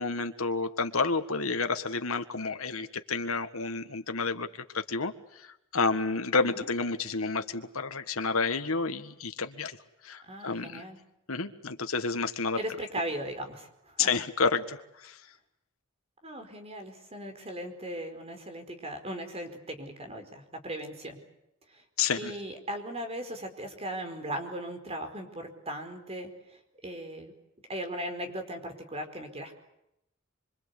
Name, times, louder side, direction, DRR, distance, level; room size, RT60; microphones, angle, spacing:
voice 1, 0.0-4.5 4.7-9.8 10.0-10.8 11.3-12.6 14.0-15.2 22.0-22.3, left 4 dB, 85° left, 8 dB, 1.7 m, -30 dB
voice 2, 10.2-11.0 12.5-14.1 16.2-21.2 21.7-21.8 22.2-27.3 27.7-29.6, right 1 dB, 30° right, 6 dB, 4.7 m, -38 dB
25.5 x 25.0 x 8.4 m, 0.83 s
head